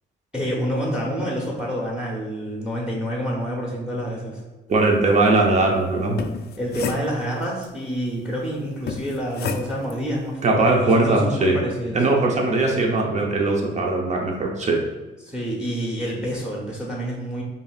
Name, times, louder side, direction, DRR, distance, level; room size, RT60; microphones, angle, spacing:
voice 1, 0.3-4.4 6.6-12.2 15.2-17.4, equal, 5° right, -2 dB, 1.0 m, -28 dB
voice 2, 4.7-6.2 10.4-11.6 11.9-14.8, right 2 dB, 35° right, 0 dB, 0.8 m, -20 dB
sound 1, 6.0-7.6 8.9-10.0, left 5 dB, 55° left, 0.4 m, -31 dB
5.1 x 2.8 x 2.4 m, 1.2 s
cardioid pair, 90°, 20 cm